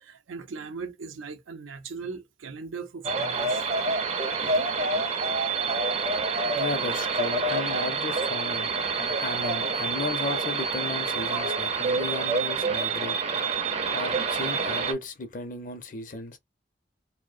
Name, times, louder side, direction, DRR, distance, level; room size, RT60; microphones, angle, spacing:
voice 1, 0.0-3.6 4.4-4.7, right 4 dB, 85° right, 0.5 m, -39 dB
sound 1, 3.0-14.9, right 4 dB, 35° right, 0.4 m, -27 dB
voice 2, 6.6-13.2 13.9-16.4, left 3 dB, 45° left, 0.5 m, -35 dB
2.6 x 2.0 x 2.4 m
head